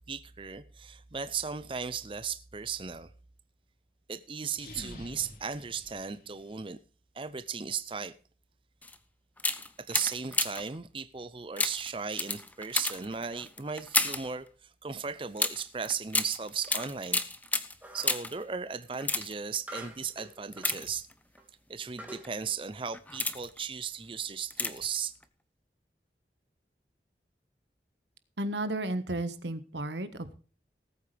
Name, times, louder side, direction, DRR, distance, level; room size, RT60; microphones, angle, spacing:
voice 1, 0.1-3.1 4.1-6.8 7.1-8.1 9.8-17.2 17.9-21.1 21.7-25.1, right 6 dB, 30° right, 0.5 m, -36 dB
sound 1, 4.5-6.6, left 1 dB, 55° left, 2.9 m, -48 dB
sound 2, 8.8-9.0 9.4-10.8 11.6-14.3 15.4-18.4 18.9-19.6 20.5-21.4 22.0-22.3 22.8-23.6 24.5-25.0 25.2-25.3, left 3 dB, 10° left, 0.7 m, -32 dB
sound 3, 17.8-18.3 19.7-20.8 21.4-21.5 22.0-22.3, right 1 dB, 10° right, 1.9 m, -45 dB
voice 2, 28.4-30.4, right 1 dB, 90° right, 1.4 m, -33 dB
19.0 x 8.5 x 3.4 m
head